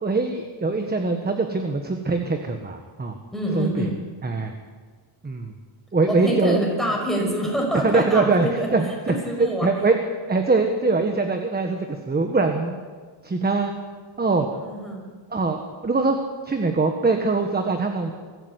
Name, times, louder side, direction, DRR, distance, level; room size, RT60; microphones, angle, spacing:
voice 1, 0.0-3.1 3.5-3.9 4.2-4.5 5.2-5.5 5.9-6.6 7.8-10.0 10.3-12.8 13.2-13.7 14.2-14.5 15.3-16.2 16.4-18.1, right 3 dB, 20° right, 5 dB, 1.4 m, -23 dB
voice 2, 3.3-3.9 6.1-8.7 9.1-9.7 14.6-15.0, equal, ahead, -1 dB, 5.8 m, -26 dB
23.5 x 14.5 x 8.1 m, 1.5 s
cardioid pair, 140°, 49 cm